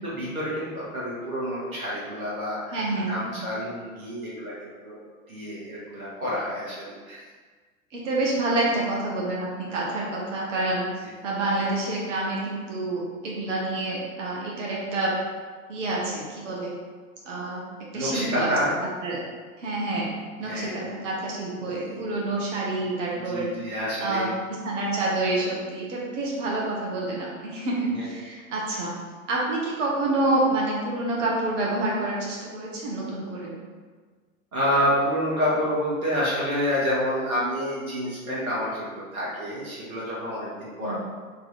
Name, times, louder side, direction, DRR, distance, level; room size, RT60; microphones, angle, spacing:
voice 1, 0.0-5.0 5.3-7.2 17.9-18.7 20.4-21.0 21.6-22.0 23.1-24.3 27.9-28.0 34.5-41.0, equal, 80° right, -6 dB, 1.4 m, -28 dB
voice 2, 2.7-3.5 7.9-10.8 11.2-15.1 15.7-16.7 17.2-17.6 17.9-18.5 18.8-19.2 19.6-20.1 20.4-23.5 24.0-24.3 24.6-28.9 29.3-33.5 40.8-41.0, right 2 dB, 60° right, -4 dB, 1.2 m, -28 dB
3.8 x 3.0 x 4.0 m, 1.5 s
figure-of-eight pair, 95°, 41 cm